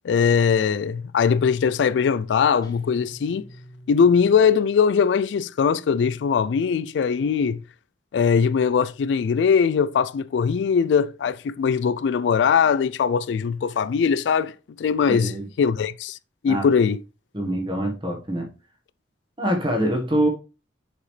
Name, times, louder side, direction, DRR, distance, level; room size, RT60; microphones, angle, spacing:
voice 1, 0.0-3.4 3.9-7.6 8.1-15.3 15.6-16.2 16.4-17.0, left 6 dB, 80° left, 0.3 m, -21 dB
Guitar, 2.6-5.2, equal, 25° left, 1.7 m, -47 dB
voice 2, 15.1-15.5 16.4-16.7 17.3-18.5 19.4-20.3, right 1 dB, 30° right, 1.3 m, -24 dB
6.8 x 4.9 x 3.2 m
head